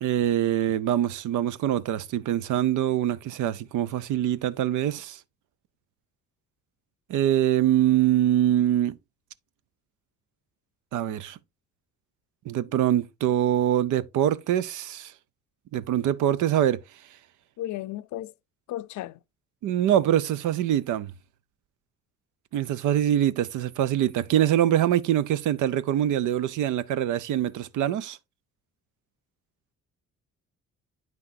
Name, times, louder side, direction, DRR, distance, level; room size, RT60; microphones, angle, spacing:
voice 1, 0.0-5.2 7.1-9.0 10.9-11.4 12.5-15.1 15.7-16.8 19.6-21.1 22.5-28.2, right 11 dB, 80° right, 0.6 m, -24 dB
voice 2, 17.6-18.3 18.7-19.2, left 14 dB, 75° left, 0.5 m, -34 dB
8.9 x 5.9 x 2.6 m
cardioid pair, 90°, 30 cm